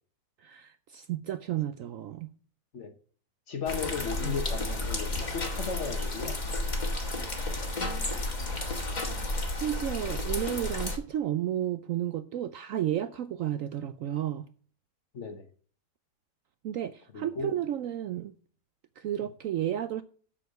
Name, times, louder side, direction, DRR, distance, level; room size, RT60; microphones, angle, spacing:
voice 1, 0.4-2.3 9.5-14.5 16.6-18.3 19.0-20.0, right 11 dB, 80° right, 0.7 m, -32 dB
voice 2, 3.5-6.4 15.1-15.5 17.1-17.5, left 5 dB, 50° left, 1.1 m, -35 dB
sound 1, 3.7-11.0, left 2 dB, 25° left, 1.4 m, -32 dB
7.5 x 6.6 x 6.4 m
omnidirectional pair, 1.9 m